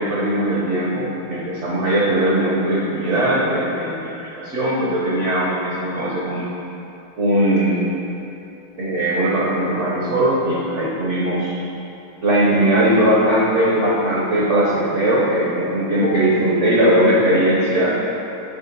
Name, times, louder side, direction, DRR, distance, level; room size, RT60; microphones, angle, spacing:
voice 1, 0.0-6.5 7.2-7.9 8.8-11.5 12.2-18.0, right 1 dB, 55° right, -6 dB, 0.8 m, -19 dB
6.0 x 3.5 x 5.9 m, 2.9 s
omnidirectional pair, 2.3 m